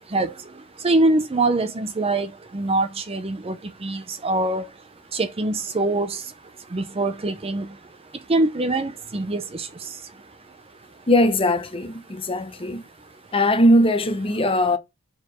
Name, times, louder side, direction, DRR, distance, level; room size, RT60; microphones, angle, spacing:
voice 1, 0.8-2.3 2.5-3.6 3.8-4.6 5.1-6.2 6.7-7.7 8.3-9.7, right 2 dB, 25° right, 0.5 m, -23 dB
voice 2, 11.1-12.8 13.3-14.8, left 1 dB, 25° left, 0.8 m, -20 dB
4.6 x 4.6 x 5.9 m
head